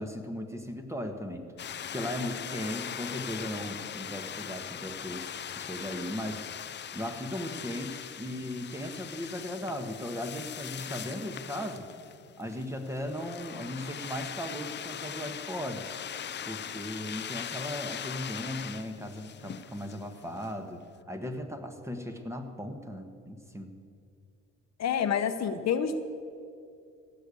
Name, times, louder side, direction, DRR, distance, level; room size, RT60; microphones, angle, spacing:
voice 1, 0.0-1.5 1.9-6.4 6.9-11.9 12.4-15.9 16.5-20.8 21.1-23.7, left 1 dB, 10° right, 5 dB, 1.4 m, -37 dB
sound 1, 1.6-20.5, left 9 dB, 35° left, 0.5 m, -40 dB
voice 2, 24.8-26.0, left 7 dB, 60° left, 9 dB, 0.9 m, -28 dB
15.5 x 6.8 x 8.5 m, 2.4 s
cardioid pair, 90°, 30 cm